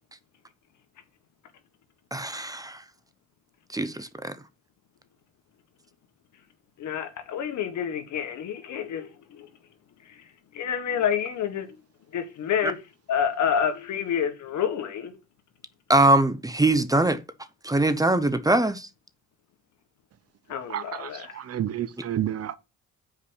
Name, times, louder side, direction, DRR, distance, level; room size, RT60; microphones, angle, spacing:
voice 1, 2.1-2.8 3.7-4.3 12.6-12.7 15.9-17.2 17.6-18.9, right 2 dB, 10° right, 0.7 m, -22 dB
voice 2, 6.8-9.5 10.5-11.8 12.1-12.8 13.1-15.2 20.5-21.3, left 8 dB, 70° left, 1.5 m, -28 dB
voice 3, 20.7-22.5, right 11 dB, 55° right, 0.7 m, -30 dB
5.6 x 4.8 x 6.4 m
cardioid pair, 90°, 30 cm